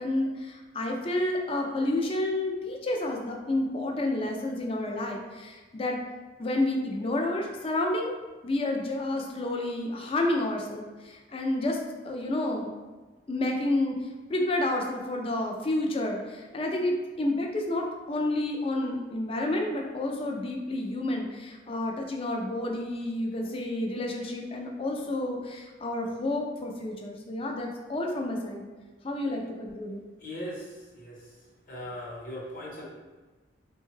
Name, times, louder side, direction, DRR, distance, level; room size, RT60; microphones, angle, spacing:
voice 1, 0.0-6.0 6.4-8.1 8.4-11.8 12.0-12.7 13.3-14.0 14.3-28.6 29.0-30.0, left 1 dB, 30° left, 1 dB, 0.4 m, -30 dB
voice 2, 30.2-31.3 31.7-32.8, equal, 45° left, -4 dB, 0.8 m, -39 dB
3.5 x 2.2 x 3.1 m, 1.3 s
head